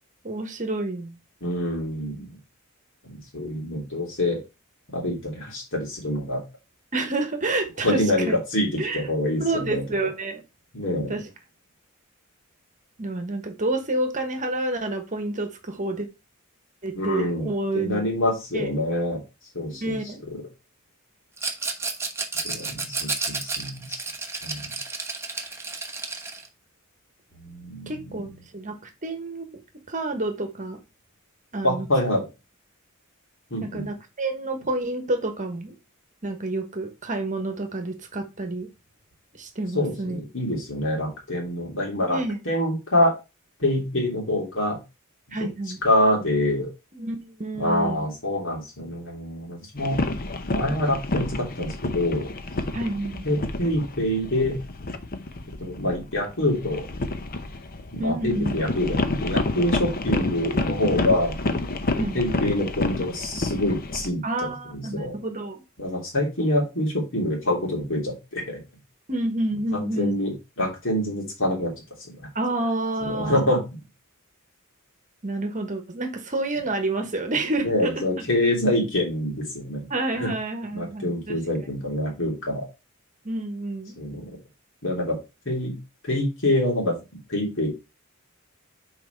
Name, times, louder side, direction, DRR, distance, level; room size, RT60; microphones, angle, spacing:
voice 1, 0.2-1.2 6.9-8.4 8.8-9.0 9.4-10.4 11.1-11.3 13.0-16.1 16.8-18.1 18.5-18.7 19.7-20.2 27.9-29.5 29.9-30.8 31.5-31.9 33.6-35.7 36.2-38.7 39.3-40.2 42.0-42.4 45.3-45.8 46.9-48.0 52.7-53.3 58.0-58.7 62.0-62.2 64.2-65.6 69.1-70.2 72.3-73.5 75.2-78.0 79.9-81.4 83.2-84.0, right 2 dB, 35° right, 1.2 m, -29 dB
voice 2, 1.4-2.3 3.0-4.4 4.9-6.4 7.8-8.7 8.9-9.8 10.7-11.1 16.9-17.5 17.7-19.2 19.5-20.0 20.3-20.4 22.4-24.0 24.4-24.8 27.4-27.9 31.6-32.3 33.5-33.9 39.7-42.2 42.4-43.1 43.6-44.8 45.8-46.7 47.6-50.0 50.5-52.3 53.2-54.6 55.6-56.8 57.9-61.4 62.1-65.2 65.8-68.6 69.7-71.7 72.1-72.2 73.0-73.8 77.6-79.9 80.2-80.3 80.7-82.7 84.0-84.4 84.8-85.2 85.4-85.8 86.0-87.0 87.3-87.7, left 1 dB, 60° left, 3.2 m, -26 dB
Rattle, 21.4-26.5, right 3 dB, 10° right, 1.0 m, -31 dB
sound 1, 49.8-64.1, left 2 dB, 45° left, 0.8 m, -29 dB
6.1 x 4.7 x 4.6 m
head